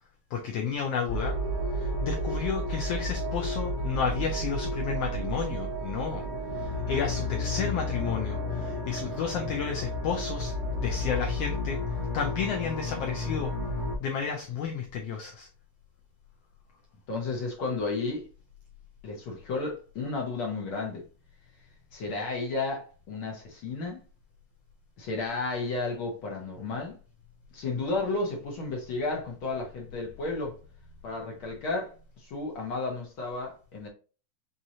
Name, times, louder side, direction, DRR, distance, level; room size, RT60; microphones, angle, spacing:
voice 1, 0.3-1.4 1.7-6.2 6.5-10.5 10.8-11.8 12.1-13.5 14.0-15.5, left 6 dB, 80° left, 1.4 m, -32 dB
sound 1, 1.1-14.0, left 1 dB, 20° left, 0.5 m, -32 dB
voice 2, 17.1-18.3 19.0-21.0 21.9-24.0 25.0-26.9 27.5-30.6 31.0-33.9, left 3 dB, 60° left, 1.4 m, -32 dB
6.1 x 2.8 x 2.7 m
omnidirectional pair, 3.4 m